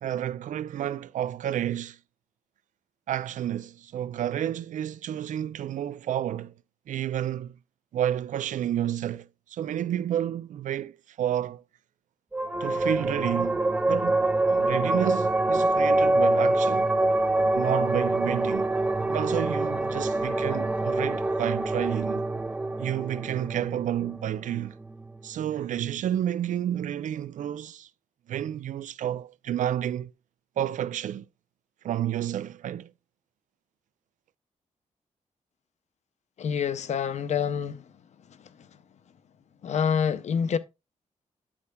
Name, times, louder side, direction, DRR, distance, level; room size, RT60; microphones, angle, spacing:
voice 1, 0.0-2.0 3.1-6.5 6.9-7.6 7.9-11.6 12.6-16.9 17.5-18.7 19.1-22.2 22.8-24.7 25.2-27.9 28.3-30.1 30.6-31.2 31.8-32.9, right 11 dB, 90° right, 0.4 m, -30 dB
sound 1, 12.3-25.2, right 2 dB, 10° right, 0.3 m, -25 dB
voice 2, 36.4-37.8 39.6-40.6, left 7 dB, 65° left, 0.6 m, -27 dB
8.5 x 7.9 x 2.2 m
wide cardioid pair, 130°, 13 cm